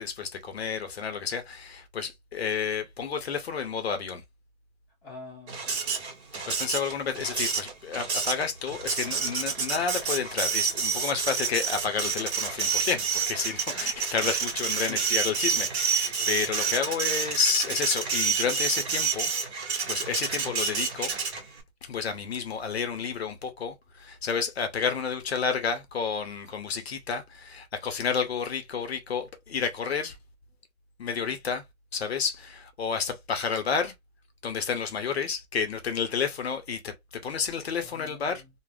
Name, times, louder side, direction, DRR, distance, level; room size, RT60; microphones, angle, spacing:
voice 1, 0.0-4.2 6.5-19.3 19.9-21.1 21.8-30.2 31.0-31.6 31.9-33.9 34.4-38.4, left 6 dB, 50° left, 0.7 m, -30 dB
voice 2, 5.0-6.1 14.7-15.0 15.5-15.6 37.8-38.5, left 3 dB, ahead, 0.5 m, -46 dB
Printer, 5.5-21.6, right 5 dB, 50° right, 1.1 m, -29 dB
2.4 x 2.1 x 3.3 m
hypercardioid pair, 155°, 42 cm